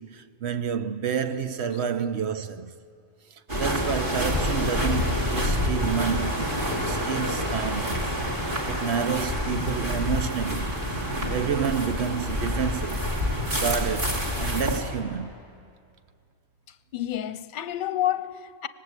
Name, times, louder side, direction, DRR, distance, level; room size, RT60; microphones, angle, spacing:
voice 1, 0.0-2.8 3.3-8.2 8.7-10.8 11.3-13.1 13.5-15.3, right 7 dB, 80° right, 1.1 m, -29 dB
sound 1, 3.5-14.8, equal, 50° right, 3.3 m, -27 dB
voice 2, 16.9-18.7, left 12 dB, 55° left, 0.8 m, -29 dB
25.0 x 19.0 x 8.1 m
omnidirectional pair, 1.1 m